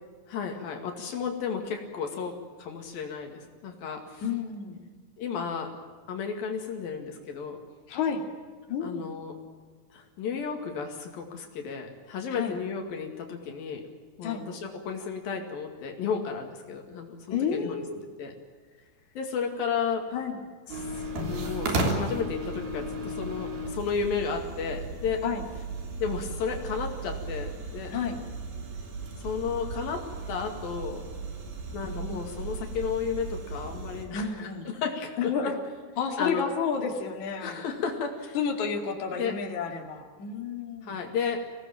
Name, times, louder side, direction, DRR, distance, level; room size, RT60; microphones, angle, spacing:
voice 1, 0.3-4.2 5.2-5.8 6.1-7.6 8.8-9.4 9.9-13.9 14.2-18.4 19.2-20.1 20.7-25.2 26.0-27.9 29.2-31.1 31.7-35.4 36.2-36.5 37.4-38.4 39.2-39.4 40.8-41.5, left 6 dB, 75° left, 3 dB, 4.0 m, -33 dB
voice 2, 4.2-4.8 7.9-8.2 8.7-9.1 12.3-12.5 14.2-14.5 17.3-18.0 20.1-20.4 25.2-25.4 27.9-28.2 31.8-32.3 34.1-34.7 35.2-35.6 36.0-37.6 38.3-41.0, left 6 dB, 55° left, 2 dB, 3.7 m, -31 dB
sound 1, 20.7-34.1, right 2 dB, 80° right, 5.2 m, -35 dB
25.5 x 18.0 x 9.1 m, 1.5 s
omnidirectional pair, 4.2 m